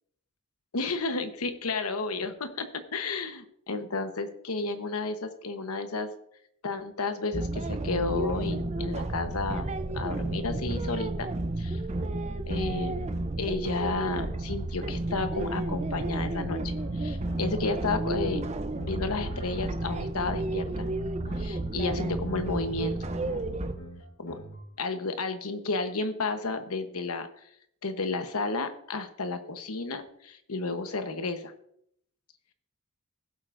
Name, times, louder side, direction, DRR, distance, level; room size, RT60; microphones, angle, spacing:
voice 1, 0.7-6.1 6.6-9.7 9.9-11.3 11.6-11.8 12.5-18.5 18.8-20.9 21.4-23.4 24.2-24.4 24.8-27.3 27.8-31.5, left 3 dB, 75° left, 8 dB, 1.0 m, -32 dB
sound 1, 7.3-23.7, right 2 dB, 30° right, 0.6 m, -32 dB
sound 2, 16.8-24.7, equal, 50° left, 1.1 m, -44 dB
16.5 x 7.7 x 2.6 m, 0.70 s
head